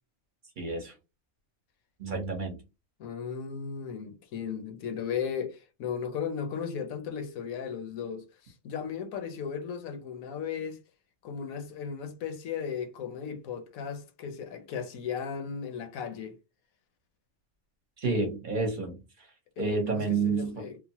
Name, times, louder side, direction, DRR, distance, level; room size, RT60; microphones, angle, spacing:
voice 1, 0.6-0.9 2.0-2.6 18.0-19.0 19.6-20.7, right 4 dB, 40° right, 0.8 m, -29 dB
voice 2, 3.0-10.8 11.2-16.3 19.6-20.8, left 7 dB, 75° left, 1.0 m, -36 dB
2.9 x 2.1 x 2.8 m
omnidirectional pair, 1.5 m